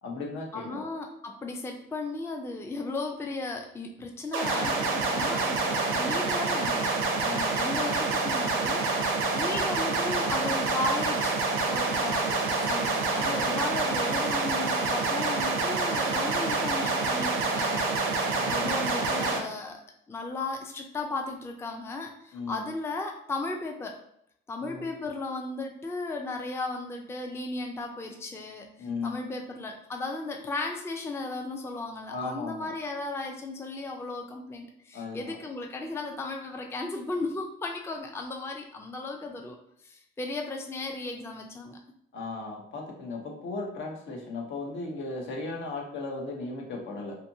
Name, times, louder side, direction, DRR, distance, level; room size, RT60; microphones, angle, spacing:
voice 1, 0.0-0.8 7.2-7.6 13.2-13.5 18.3-18.7 22.3-22.7 24.6-24.9 28.8-29.3 32.1-32.7 34.9-35.4 42.1-47.2, left 3 dB, 75° left, 0 dB, 0.8 m, -36 dB
voice 2, 0.5-11.4 11.7-17.8 18.2-24.0 24.5-39.6 39.8-41.8, left 3 dB, 15° left, 2 dB, 0.4 m, -35 dB
sound 1, 4.3-19.4, right 3 dB, 80° right, 0.6 m, -27 dB
2.7 x 2.5 x 2.6 m, 0.72 s
cardioid pair, 90°, 20 cm